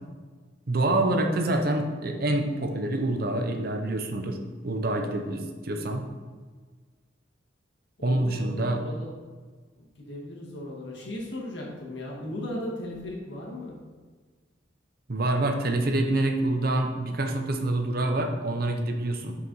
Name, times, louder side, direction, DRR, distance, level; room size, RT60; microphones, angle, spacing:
voice 1, 0.7-4.4 4.6-6.0 8.0-8.8 15.1-19.4, right 2 dB, 50° right, 4 dB, 0.8 m, -26 dB
voice 2, 8.0-9.1 9.8-13.8, left 1 dB, 70° left, -3 dB, 1.9 m, -37 dB
6.5 x 4.8 x 5.4 m, 1.5 s
head